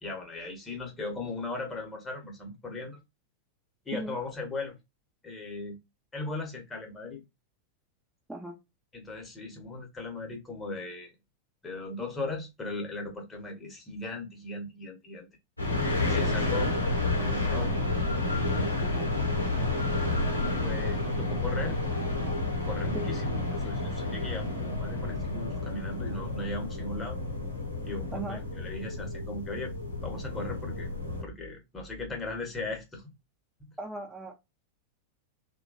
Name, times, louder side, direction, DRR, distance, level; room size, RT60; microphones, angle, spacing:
voice 1, 0.0-3.0 3.9-4.7 5.2-5.8 6.1-7.2 8.9-11.1 11.6-15.3 16.1-16.7 17.2-17.7 18.3-19.0 20.4-21.8 22.6-27.2 27.8-29.7 30.0-30.9 31.2-33.0, left 2 dB, 15° left, 1.1 m, -38 dB
sound 1, 15.6-31.2, left 2 dB, 85° left, 0.8 m, -30 dB
voice 2, 33.8-34.3, equal, 5° right, 0.6 m, -38 dB
3.0 x 2.3 x 2.5 m
figure-of-eight pair, 90°, 0 cm